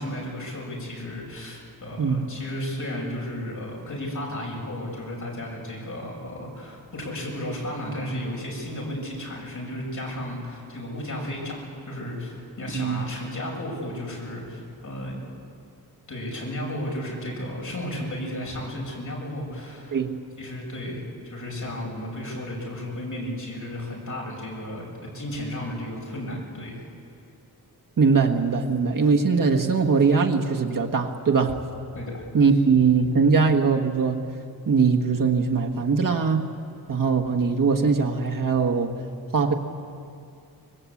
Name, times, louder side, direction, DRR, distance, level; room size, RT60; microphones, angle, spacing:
voice 1, 0.0-15.2 16.1-20.0 20.4-24.8 25.1-26.8 31.9-32.2, left 1 dB, 55° left, -2 dB, 6.9 m, -33 dB
voice 2, 12.7-13.0 19.9-20.1 28.0-31.6 32.3-34.2 34.7-36.5 36.9-38.9 39.3-39.5, right 5 dB, 60° right, 3 dB, 1.6 m, -21 dB
25.0 x 21.0 x 8.6 m, 2.4 s
wide cardioid pair, 175°, 37 cm